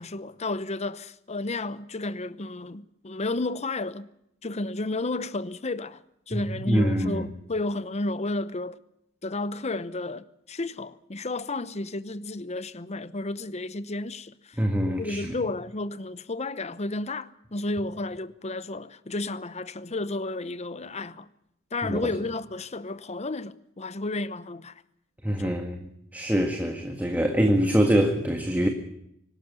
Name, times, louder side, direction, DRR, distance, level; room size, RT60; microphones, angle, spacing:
voice 1, 0.0-4.1 4.4-8.8 9.2-14.6 14.9-21.3 21.7-24.8 25.4-25.5, left 2 dB, 35° left, 0.9 m, -32 dB
voice 2, 6.3-7.3 14.6-15.3 21.8-22.0 25.2-25.9 26.1-28.7, equal, 10° right, 1.7 m, -24 dB
24.5 x 12.5 x 9.4 m
head